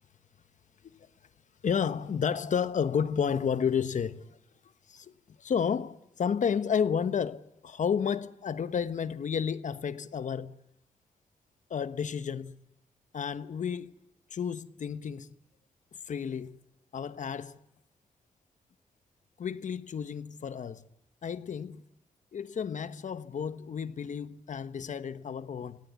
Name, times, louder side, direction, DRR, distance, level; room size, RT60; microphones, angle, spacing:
voice 1, 1.6-4.4 4.9-5.1 5.4-10.6 11.7-12.6 13.1-13.9 14.3-15.3 16.1-16.6 16.9-17.6 19.4-20.8 21.2-21.8 22.3-25.8, left 7 dB, 70° left, 1.2 m, -31 dB
28.0 x 17.5 x 8.4 m
cardioid pair, 80°, 13 cm